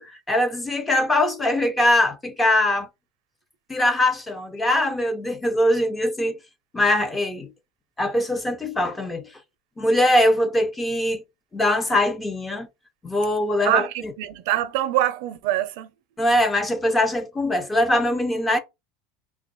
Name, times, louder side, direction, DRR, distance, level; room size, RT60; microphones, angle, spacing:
voice 1, 0.0-2.9 3.7-6.4 6.7-7.5 8.0-9.3 9.8-11.2 11.5-12.7 13.0-13.9 16.2-18.6, left 1 dB, 10° left, 0.5 m, -22 dB
voice 2, 13.6-15.9, right 14 dB, 65° right, 0.5 m, -24 dB
2.9 x 2.3 x 3.9 m
supercardioid pair, 160°, 0 cm